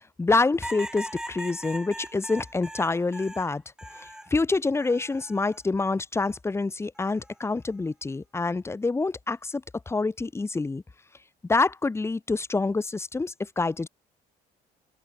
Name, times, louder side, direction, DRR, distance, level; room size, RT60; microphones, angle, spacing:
voice 1, 0.0-3.6 4.0-10.8 11.5-13.9, left 3 dB, 15° left, 1.0 m, -27 dB
sound 1, 0.6-4.3 4.8-5.6 7.0-7.4, right 1 dB, 5° right, 3.1 m, -40 dB
open air
cardioid pair, 110°, 17 cm